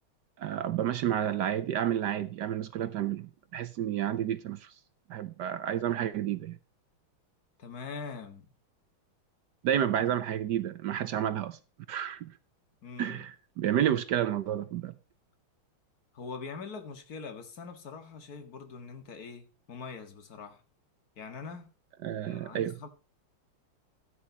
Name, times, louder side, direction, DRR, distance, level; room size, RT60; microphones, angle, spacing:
voice 1, 0.4-4.7 5.1-6.6 9.6-11.6 11.9-12.3 13.0-14.9 22.0-22.7, right 10 dB, 70° right, 1.1 m, -30 dB
voice 2, 7.6-8.5 9.7-10.2 12.8-13.3 16.1-20.6 21.2-21.7 22.2-22.9, left 5 dB, 45° left, 2.1 m, -43 dB
14.0 x 9.7 x 2.9 m
omnidirectional pair, 2.3 m